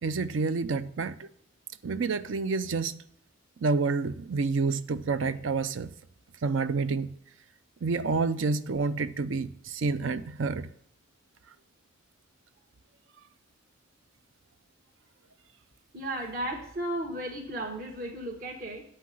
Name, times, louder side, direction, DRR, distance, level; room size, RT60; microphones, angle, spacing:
voice 1, 0.0-1.3 1.8-3.0 3.6-5.9 6.4-7.1 7.8-10.7, right 4 dB, 70° right, 0.5 m, -28 dB
voice 2, 15.9-18.8, right 1 dB, 50° right, 1.4 m, -34 dB
8.4 x 5.8 x 7.4 m
head